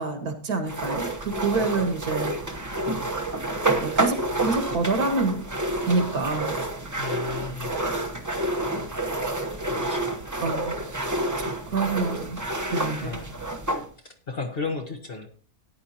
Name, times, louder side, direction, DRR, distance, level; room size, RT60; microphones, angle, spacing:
voice 1, 0.0-2.3 3.8-5.5 5.8-6.6 10.4-10.7 11.5-12.4 12.7-13.2, right 3 dB, 65° right, 6 dB, 2.2 m, -27 dB
sound 1, 0.7-13.9, right 2 dB, 15° right, 0.8 m, -29 dB
voice 2, 7.0-7.8 9.6-10.2 13.0-13.3 14.0-15.3, left 4 dB, 40° left, 4 dB, 1.3 m, -34 dB
14.0 x 10.0 x 2.9 m, 0.41 s
omnidirectional pair, 1.7 m